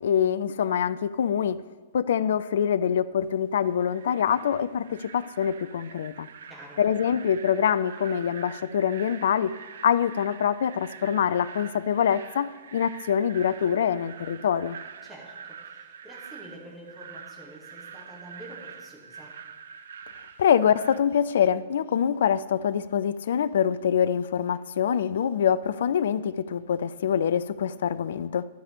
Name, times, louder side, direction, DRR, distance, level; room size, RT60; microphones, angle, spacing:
voice 1, 0.0-1.6 1.9-6.3 6.8-9.5 9.8-14.8 20.4-28.5, left 8 dB, 60° left, 17 dB, 0.3 m, -25 dB
sound 1, 3.6-21.0, right 7 dB, 60° right, 0.5 m, -45 dB
voice 2, 6.5-6.8 15.0-19.3, right 1 dB, 5° right, -4 dB, 2.4 m, -47 dB
11.5 x 4.9 x 6.7 m, 1.3 s
figure-of-eight pair, 105°, 0 cm